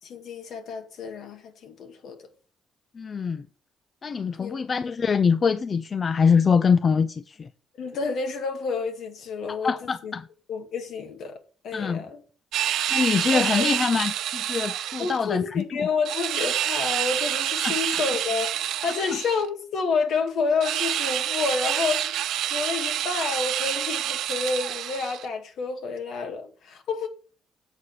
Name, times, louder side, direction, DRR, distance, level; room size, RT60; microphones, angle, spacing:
voice 1, 0.0-2.2 4.4-4.6 7.8-10.1 10.5-11.3 11.6-12.2 13.3-13.7 15.0-22.2 22.5-27.1, left 4 dB, 75° left, 2.0 m, -29 dB
voice 2, 2.9-3.5 4.0-7.5 9.5-10.3 11.7-12.0 12.9-15.6 17.6-17.8 19.1-19.2, left 5 dB, 40° left, 0.5 m, -24 dB
sound 1, 12.5-15.2 16.1-19.5 20.6-25.3, right 11 dB, 80° right, 0.6 m, -27 dB
8.1 x 4.8 x 7.2 m
cardioid pair, 90°, 0 cm